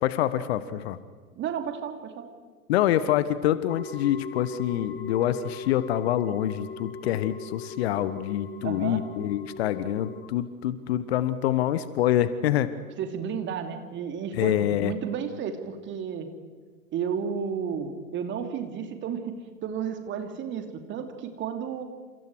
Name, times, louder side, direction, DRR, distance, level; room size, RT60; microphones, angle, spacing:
voice 1, 0.0-1.0 2.7-12.7 14.3-14.9, left 12 dB, 45° left, 15 dB, 1.2 m, -26 dB
voice 2, 1.4-2.3 8.6-9.0 13.0-16.3 16.9-21.8, right 7 dB, 25° right, 6 dB, 2.7 m, -32 dB
sound 1, 3.7-10.2, left 5 dB, 25° left, 3.0 m, -40 dB
29.5 x 28.5 x 4.8 m, 1.5 s
figure-of-eight pair, 100°, 44 cm